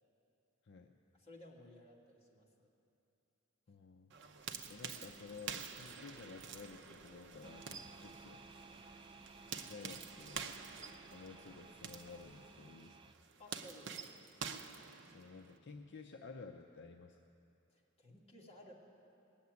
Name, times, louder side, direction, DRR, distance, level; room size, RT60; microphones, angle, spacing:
voice 1, 0.6-0.9 3.7-4.1 4.7-8.4 9.5-10.5 11.1-13.0 15.1-17.2, left 4 dB, 55° left, 3 dB, 0.6 m, -53 dB
voice 2, 1.2-2.7 13.4-14.2 17.7-18.7, left 1 dB, 30° left, -4 dB, 2.2 m, -57 dB
sound 1, 4.1-15.6, right 6 dB, 60° right, 0.7 m, -49 dB
sound 2, 4.4-12.6, equal, 10° left, 1.1 m, -66 dB
sound 3, 7.4-13.1, right 4 dB, 25° right, 0.4 m, -58 dB
19.0 x 7.2 x 9.5 m, 2.7 s
head